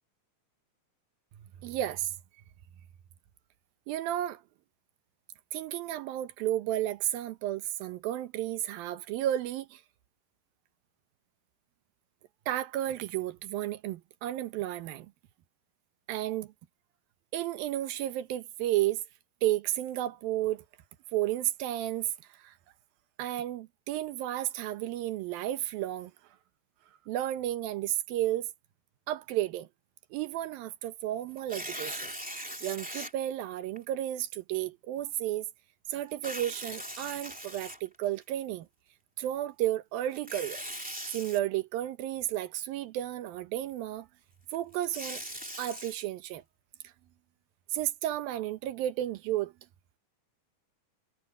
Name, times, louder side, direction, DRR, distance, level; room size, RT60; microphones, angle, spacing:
voice 1, 1.6-2.1 3.9-4.4 5.5-9.8 12.5-15.1 16.1-16.5 17.3-19.0 19.4-20.6 21.1-22.1 22.4-22.5 23.2-26.1 27.1-28.5 29.1-29.7 30.1-32.1 32.6-35.5 35.9-38.7 39.2-40.6 41.1-44.1 44.5-45.2 45.6-46.4 47.7-49.5, right 13 dB, 80° right, 2.8 m, -32 dB
Tearing, 31.4-33.1 33.8-33.9 36.1-38.2 40.1-41.4 44.5-45.9, equal, 5° right, 2.0 m, -40 dB
omnidirectional pair, 4.1 m